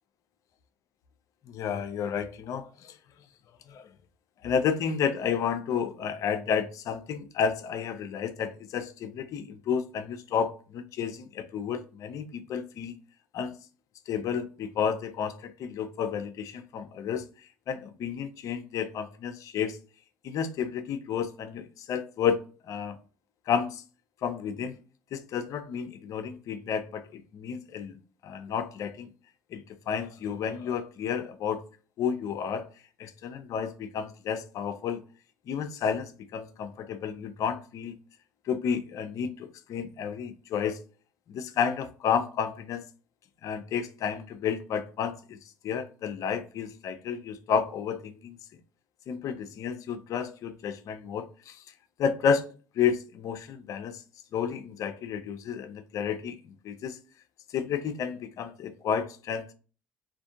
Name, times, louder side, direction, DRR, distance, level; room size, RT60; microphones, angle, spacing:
voice 1, 1.5-3.0 3.7-3.9 4.4-12.9 13.3-13.5 14.1-17.3 17.7-19.8 20.2-22.4 22.7-23.0 23.5-23.8 24.2-24.8 25.1-27.9 28.2-29.1 29.5-31.6 32.0-32.6 33.0-35.0 35.5-38.0 38.5-40.8 41.3-42.9 43.4-45.4 45.6-48.3 49.1-51.6 52.0-52.4 52.8-54.0 54.3-56.4 56.6-57.0 57.5-59.5, left 7 dB, 55° left, 0.5 m, -31 dB
3.4 x 2.5 x 2.6 m
hypercardioid pair, 60°, 7 cm